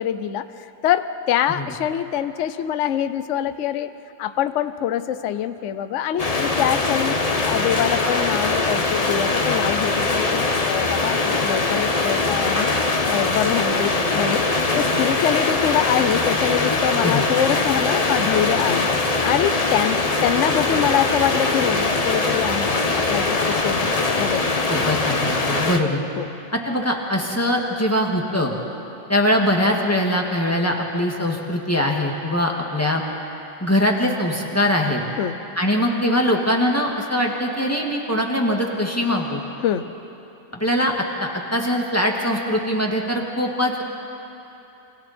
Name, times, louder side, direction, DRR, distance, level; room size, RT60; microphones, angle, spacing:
voice 1, 0.0-3.9 4.2-12.7 13.0-14.4 14.8-23.9 24.2-24.6 26.2-26.3 35.2-35.4 39.6-39.9, left 10 dB, 60° left, 11 dB, 0.8 m, -24 dB
sound 1, 6.2-25.8, left 3 dB, 30° left, 0.8 m, -22 dB
voice 2, 24.7-26.0 26.5-28.5 29.1-33.0 33.6-35.0 35.6-39.4 40.5-40.9 41.2-43.8, left 1 dB, 10° left, -1 dB, 1.9 m, -22 dB
29.5 x 25.5 x 4.4 m, 3.0 s
omnidirectional pair, 2.0 m